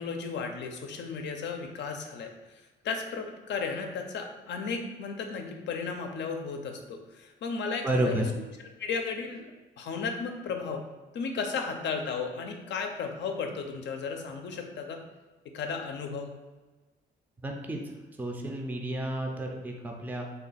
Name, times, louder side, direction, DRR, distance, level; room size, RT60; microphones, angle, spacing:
voice 1, 0.0-2.3 2.8-8.2 8.8-9.5 9.8-10.8 11.1-15.0 15.5-16.3, left 5 dB, 65° left, 4 dB, 0.6 m, -34 dB
voice 2, 7.8-8.2 17.4-17.9 18.2-20.3, right 1 dB, 10° right, 1 dB, 0.5 m, -31 dB
3.3 x 2.3 x 4.0 m, 1.2 s
cardioid pair, 90°, 20 cm